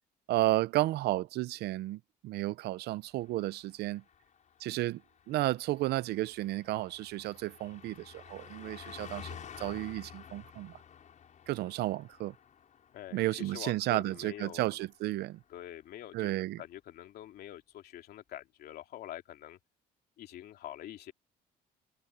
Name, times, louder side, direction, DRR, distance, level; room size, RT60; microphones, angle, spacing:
voice 1, 0.3-4.0 4.6-5.0 5.3-10.7 11.5-12.3 13.1-15.4 16.1-16.6, right 16 dB, 75° right, 0.7 m, -32 dB
Car passing by, 3.1-15.0 15.3-15.6, left 8 dB, 45° left, 6.7 m, -52 dB
voice 2, 12.9-14.8 15.5-16.3 16.6-19.6 20.2-21.1, left 12 dB, 70° left, 2.9 m, -46 dB
cardioid pair, 110°, 17 cm